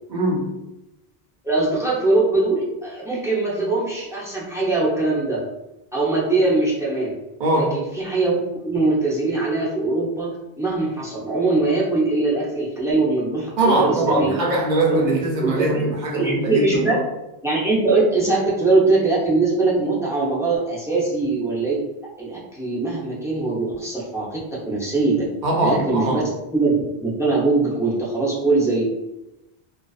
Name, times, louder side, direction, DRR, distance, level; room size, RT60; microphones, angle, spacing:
voice 1, 0.1-0.5 7.4-7.8 13.6-17.0 25.4-26.3, right 2 dB, 55° right, -1 dB, 0.6 m, -21 dB
voice 2, 1.4-5.4 5.9-7.1 7.5-14.3 14.8-15.1 15.4-15.8 16.1-16.9 17.4-21.8 22.2-25.2 25.6-26.2 26.5-28.8, right 3 dB, 5° right, -6 dB, 0.4 m, -22 dB
2.4 x 2.3 x 2.3 m, 0.93 s
omnidirectional pair, 1.0 m